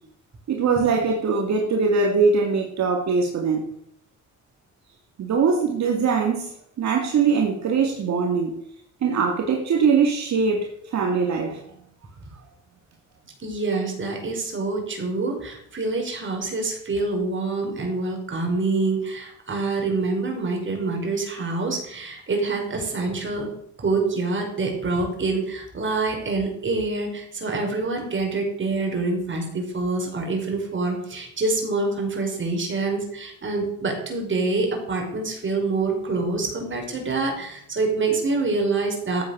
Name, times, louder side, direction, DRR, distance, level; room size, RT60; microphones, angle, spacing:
voice 1, 0.5-3.7 5.2-8.6 9.0-11.6, right 5 dB, 65° right, 2 dB, 2.3 m, -22 dB
voice 2, 13.4-23.5 23.8-39.2, right 3 dB, 40° right, 2 dB, 5.5 m, -26 dB
14.0 x 9.1 x 6.7 m, 0.69 s
cardioid pair, 90°, 30 cm